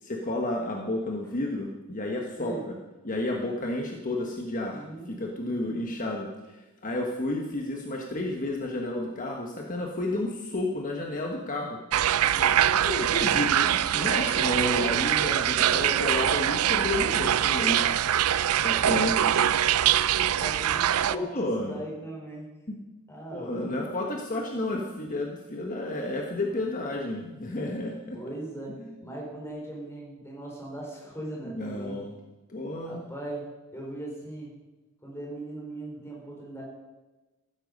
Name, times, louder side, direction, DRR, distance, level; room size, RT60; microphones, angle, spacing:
voice 1, 0.0-2.7 3.0-11.8 12.8-17.8 18.5-19.2 21.1-21.8 22.7-22.8 23.3-28.2 31.5-32.1 32.5-33.0, left 2 dB, 35° left, 1 dB, 1.4 m, -31 dB
voice 2, 4.7-5.1 12.3-12.9 18.5-18.7 19.8-22.5 23.1-23.7 28.1-32.0 32.8-33.5 33.7-34.5 35.0-36.6, right 1 dB, 10° left, -3 dB, 4.6 m, -39 dB
sound 1, 11.9-21.2, right 10 dB, 75° right, 0.5 m, -23 dB
15.0 x 13.0 x 5.3 m, 1.1 s
head